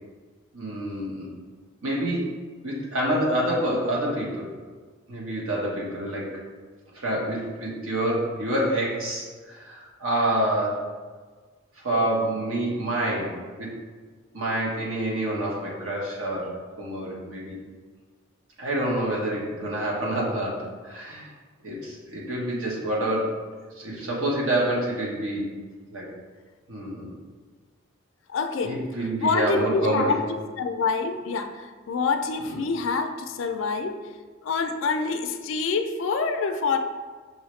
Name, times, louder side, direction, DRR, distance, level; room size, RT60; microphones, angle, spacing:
voice 1, 0.5-1.3 1.8-2.3 2.6-4.5 5.1-6.4 6.9-10.9 11.8-13.7 14.3-16.5 16.8-17.6 18.6-21.3 21.6-23.4 23.8-25.5 25.9-26.1 26.7-27.2 28.6-30.2 32.4-32.6, right 1 dB, 80° right, -4 dB, 1.2 m, -27 dB
voice 2, 28.3-28.7 29.2-30.2 30.6-33.9 34.4-36.8, left 4 dB, 65° left, 7 dB, 0.3 m, -26 dB
5.6 x 2.8 x 3.1 m, 1.5 s
head